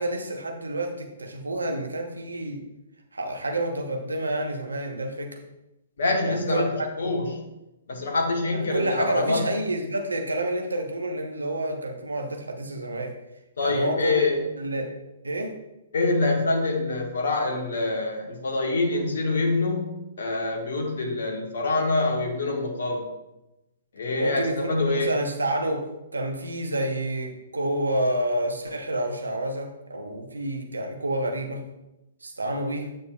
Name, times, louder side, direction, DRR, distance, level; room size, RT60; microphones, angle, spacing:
voice 1, 0.0-2.6 3.1-5.4 6.3-6.6 8.5-13.2 13.6-14.3 14.6-14.9 15.2-15.6 24.2-31.6 32.2-32.9, right 1 dB, 75° right, 3 dB, 1.1 m, -29 dB
voice 2, 6.0-7.4 7.9-9.5 13.6-14.4 15.9-23.1 23.9-25.2, left 2 dB, 55° left, 0 dB, 1.4 m, -25 dB
8.7 x 6.6 x 2.4 m, 0.94 s
figure-of-eight pair, 120°, 0 cm